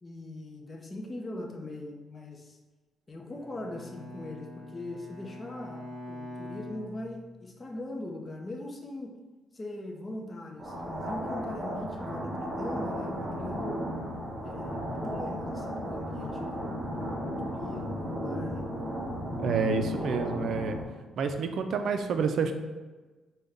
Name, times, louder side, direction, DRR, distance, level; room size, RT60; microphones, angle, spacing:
voice 1, 0.0-2.6 3.1-9.2 9.5-13.9 14.4-18.7, left 1 dB, 25° left, 1 dB, 0.7 m, -41 dB
Bowed string instrument, 3.3-7.6, left 1 dB, 5° right, 1.3 m, -44 dB
sound 1, 10.6-20.8, equal, 30° right, 1.1 m, -34 dB
voice 2, 19.4-20.8 21.2-22.5, right 5 dB, 65° right, 7 dB, 0.4 m, -28 dB
5.1 x 2.2 x 3.5 m, 1.2 s
cardioid pair, 90°, 0 cm